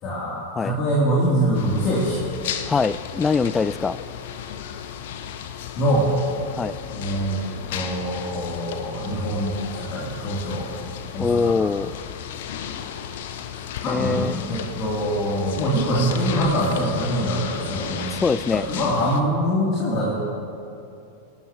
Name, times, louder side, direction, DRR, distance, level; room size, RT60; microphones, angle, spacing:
voice 1, 0.0-2.2 5.7-6.1 6.9-7.4 7.7-10.7 11.1-11.5 13.5-18.2 18.7-20.1, equal, 35° left, -6 dB, 3.4 m, -24 dB
sound 1, 1.5-19.2, left 9 dB, 55° left, 0.8 m, -34 dB
voice 2, 2.7-4.0 6.5-6.8 11.2-11.9 13.9-14.4 18.1-18.6, left 4 dB, 15° left, 18 dB, 0.3 m, -23 dB
27.0 x 12.5 x 3.2 m, 2.7 s
figure-of-eight pair, 90°, 0 cm